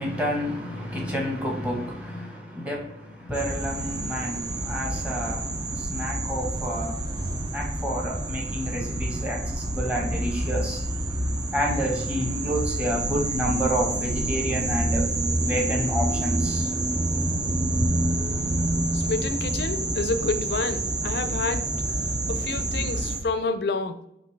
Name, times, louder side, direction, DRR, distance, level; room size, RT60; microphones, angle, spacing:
voice 1, 0.0-11.2 11.5-15.1 15.4-17.1, equal, 10° right, 1.2 m, -30 dB
sound 1, 3.3-23.2, right 1 dB, 25° right, 0.5 m, -28 dB
voice 2, 18.9-21.7 22.3-24.0, left 3 dB, 65° left, 0.5 m, -29 dB
5.3 x 2.8 x 3.2 m
head